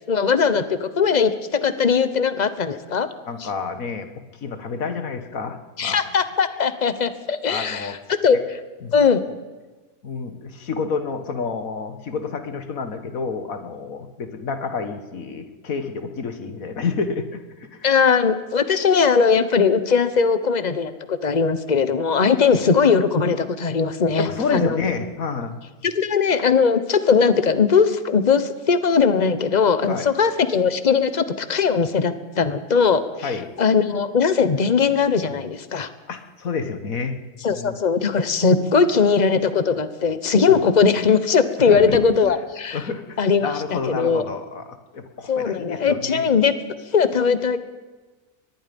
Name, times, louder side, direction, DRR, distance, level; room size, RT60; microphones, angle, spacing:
voice 1, 0.1-3.1 3.4-3.5 5.8-8.0 8.2-8.6 8.9-9.2 17.8-24.8 25.8-35.9 37.4-42.8 43.2-44.3 45.3-46.5 46.9-47.6, left 5 dB, 30° left, 12 dB, 1.2 m, -19 dB
voice 2, 3.3-6.0 7.5-8.0 8.8-8.9 10.0-17.4 17.7-17.8 24.2-25.6 29.8-30.1 33.2-33.5 36.1-37.2 37.4-37.8 41.6-42.3 42.7-44.7 44.9-46.2, left 5 dB, 65° left, 8 dB, 2.0 m, -29 dB
24.0 x 20.5 x 5.4 m, 1.3 s
omnidirectional pair, 1.6 m